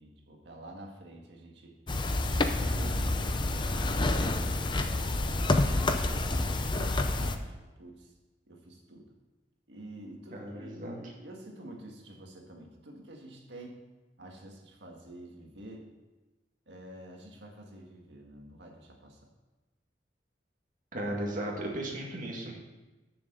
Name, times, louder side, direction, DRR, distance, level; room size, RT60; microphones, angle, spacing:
voice 1, 0.0-1.8 2.4-8.1 8.5-9.1 9.7-10.8 11.0-13.8 14.2-15.9 16.7-19.2, right 1 dB, 80° right, 1 dB, 1.8 m, -48 dB
sound 1, 1.9-7.4, left 2 dB, 30° left, 0.6 m, -28 dB
voice 2, 10.3-11.0 20.9-22.5, right 1 dB, 50° right, -1 dB, 1.9 m, -35 dB
7.1 x 6.8 x 6.7 m, 1.1 s
head